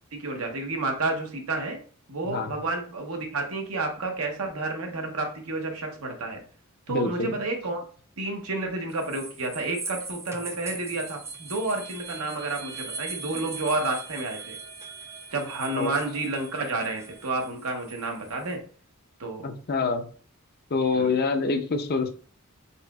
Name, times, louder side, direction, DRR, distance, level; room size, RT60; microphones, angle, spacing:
voice 1, 0.1-1.8 2.1-6.4 6.9-7.8 8.2-14.6 15.3-18.6 19.2-19.5 20.9-21.1, right 2 dB, 75° right, 3 dB, 0.9 m, -30 dB
voice 2, 2.2-2.5 6.9-7.3 15.7-16.0 19.4-20.1 20.7-22.1, left 4 dB, 45° left, 7 dB, 0.5 m, -26 dB
sound 1, 8.9-18.6, right 3 dB, 10° right, 0.3 m, -41 dB
sound 2, 10.9-17.5, right 7 dB, 55° right, 1.1 m, -45 dB
4.2 x 3.7 x 2.3 m, 0.43 s
head